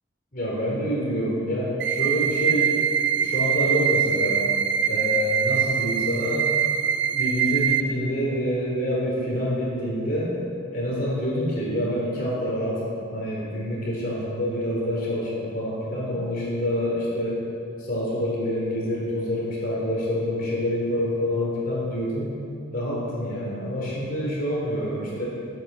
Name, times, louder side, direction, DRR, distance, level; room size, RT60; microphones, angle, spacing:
voice 1, 0.3-2.8 3.1-4.4 4.9-6.5 7.1-10.3 10.7-17.4 17.8-22.4 22.7-25.2, equal, 45° left, -4 dB, 3.8 m, -27 dB
sound 1, 1.8-7.8, right 8 dB, 60° right, 0.7 m, -23 dB
12.5 x 11.0 x 7.5 m, 2.5 s
head